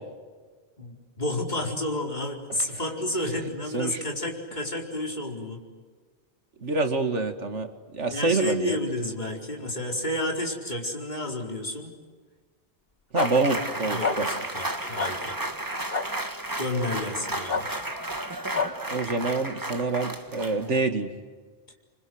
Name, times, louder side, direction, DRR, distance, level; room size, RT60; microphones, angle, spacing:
voice 1, 0.8-5.6 8.1-11.9 13.9-15.4 16.6-17.8, left 1 dB, 40° left, 1 dB, 4.7 m, -31 dB
voice 2, 6.6-8.8 13.1-14.3 18.9-21.1, right 3 dB, 85° right, 8 dB, 2.5 m, -26 dB
sound 1, 13.1-13.3 14.0-14.2 15.0-15.1 15.9-16.0 17.5-17.6 18.5-18.7, left 4 dB, 55° left, 2.0 m, -26 dB
sound 2, 13.2-20.8, right 1 dB, 15° right, 1.8 m, -33 dB
28.0 x 25.0 x 8.0 m, 1.5 s
omnidirectional pair, 1.2 m